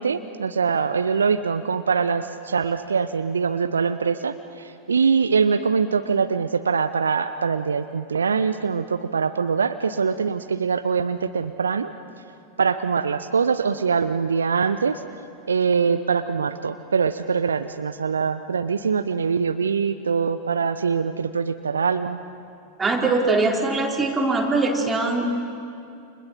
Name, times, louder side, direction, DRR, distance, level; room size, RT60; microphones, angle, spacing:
voice 1, 0.0-11.9 12.6-15.0 15.4-22.2, right 5 dB, 70° right, 11 dB, 0.8 m, -23 dB
voice 2, 22.8-25.2, right 3 dB, 15° right, 0 dB, 4.2 m, -22 dB
29.5 x 27.0 x 7.3 m, 2.5 s
figure-of-eight pair, 90°, 0 cm